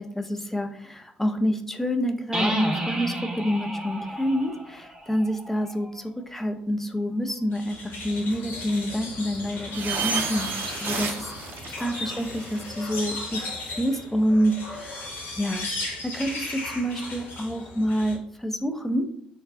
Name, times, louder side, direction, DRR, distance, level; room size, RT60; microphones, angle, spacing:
voice 1, 0.0-11.3 11.8-15.1 15.4-19.1, equal, 5° left, 6 dB, 0.4 m, -28 dB
sound 1, 2.3-6.0, right 1 dB, 15° right, 0.9 m, -32 dB
sound 2, 7.5-18.2, left 2 dB, 60° left, 1.0 m, -36 dB
sound 3, 9.7-12.8, right 5 dB, 50° right, 0.5 m, -31 dB
3.6 x 2.3 x 2.3 m, 0.66 s
figure-of-eight pair, 50°, 4 cm